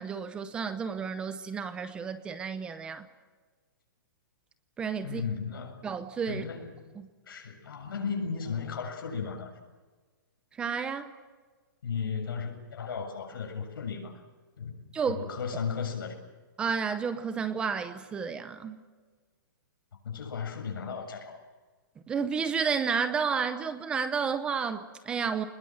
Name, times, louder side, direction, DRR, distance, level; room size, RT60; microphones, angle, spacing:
voice 1, 0.0-3.1 4.8-5.2 5.8-6.4 7.0-7.1 10.6-11.1 14.9-15.3 16.6-18.8 22.1-25.5, right 6 dB, 10° right, 11 dB, 0.7 m, -31 dB
voice 2, 5.0-5.8 6.3-6.7 7.3-9.5 11.8-14.2 14.6-14.8 15.1-16.2 20.0-21.4, left 6 dB, 85° left, 4 dB, 7.3 m, -35 dB
26.0 x 21.0 x 7.8 m, 1.4 s
hypercardioid pair, 175°, 11 cm